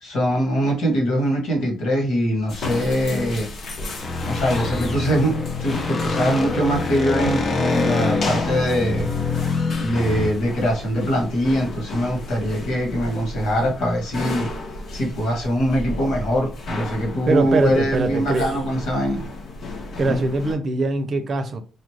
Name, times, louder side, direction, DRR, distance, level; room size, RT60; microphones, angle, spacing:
voice 1, 0.0-3.5 4.2-9.1 9.8-14.5 14.9-19.2 20.0-20.2, equal, 85° left, 1.9 m, -22 dB
sound 1, 2.5-20.5, left 2 dB, 65° left, 1.1 m, -33 dB
sound 2, 4.0-10.3, left 4 dB, 45° left, 0.9 m, -25 dB
voice 2, 17.3-18.6 20.0-21.6, right 3 dB, 50° right, 0.6 m, -22 dB
4.2 x 2.5 x 3.3 m
cardioid pair, 90°, 0 cm